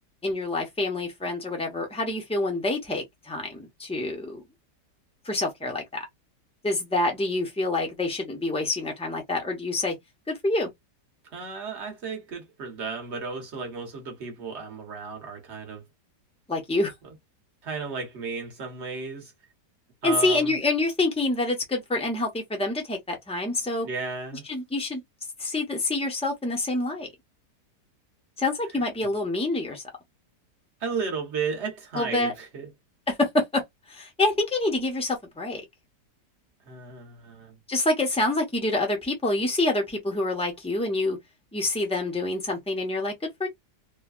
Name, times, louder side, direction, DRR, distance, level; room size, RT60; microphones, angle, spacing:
voice 1, 0.2-4.4 5.2-5.8 6.6-9.9 10.3-10.7 16.5-16.9 20.0-23.9 24.5-25.0 25.4-27.1 28.4-29.8 31.9-32.3 33.1-33.6 33.9-35.6 37.7-41.2 41.5-43.1 43.4-43.5, left 2 dB, 5° left, 0.4 m, -27 dB
voice 2, 11.3-15.8 17.6-19.3 20.0-20.6 23.8-24.4 30.8-32.7 36.6-37.6, right 5 dB, 45° right, 1.3 m, -34 dB
3.2 x 2.3 x 2.3 m
omnidirectional pair, 1.8 m